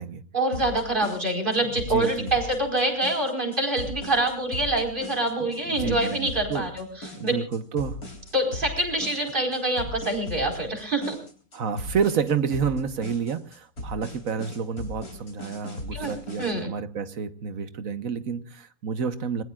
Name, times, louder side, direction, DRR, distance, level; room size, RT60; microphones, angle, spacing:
voice 1, 0.3-7.3 8.3-11.2 15.9-16.1 16.4-16.7, right 2 dB, 35° right, 4.9 m, -26 dB
sound 1, 0.5-16.5, left 1 dB, 85° left, 4.3 m, -38 dB
voice 2, 1.7-2.3 5.7-6.7 7.2-8.0 11.5-19.4, right 6 dB, 70° right, 1.5 m, -29 dB
26.5 x 21.0 x 2.4 m
omnidirectional pair, 1.5 m